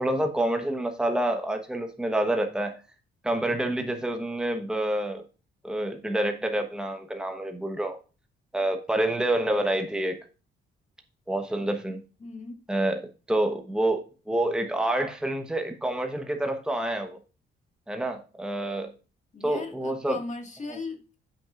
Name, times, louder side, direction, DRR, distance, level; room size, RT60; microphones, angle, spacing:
voice 1, 0.0-2.8 3.2-5.2 5.6-8.0 8.5-10.2 11.3-12.0 12.7-13.0 13.3-17.2 17.9-18.9 19.4-20.2, right 1 dB, 5° right, 1.1 m, -27 dB
voice 2, 12.2-12.6 19.3-21.2, left 3 dB, 35° left, 2.0 m, -38 dB
14.0 x 6.1 x 2.5 m
cardioid pair, 90°, 20 cm